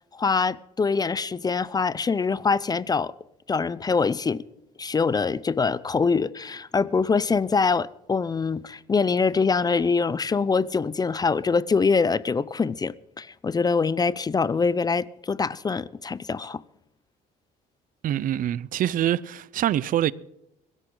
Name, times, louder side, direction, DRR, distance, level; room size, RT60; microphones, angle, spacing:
voice 1, 0.1-3.1 3.5-4.4 4.8-16.6, left 5 dB, 25° left, 0.5 m, -24 dB
voice 2, 18.0-20.1, right 12 dB, 55° right, 0.6 m, -25 dB
22.5 x 13.5 x 3.9 m
cardioid pair, 110°, 17 cm